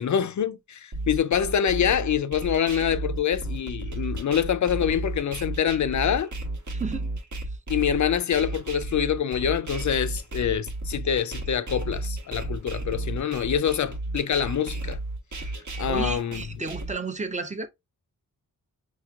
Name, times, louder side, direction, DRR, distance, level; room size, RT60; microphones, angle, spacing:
voice 1, 0.0-6.3 7.7-15.0 15.8-16.4, left 8 dB, 55° left, 0.5 m, -25 dB
sound 1, 0.9-16.9, right 2 dB, 55° right, 1.1 m, -33 dB
voice 2, 6.7-7.1 15.9-17.7, right 4 dB, 20° right, 0.6 m, -32 dB
5.8 x 2.9 x 2.3 m
wide cardioid pair, 110°, 36 cm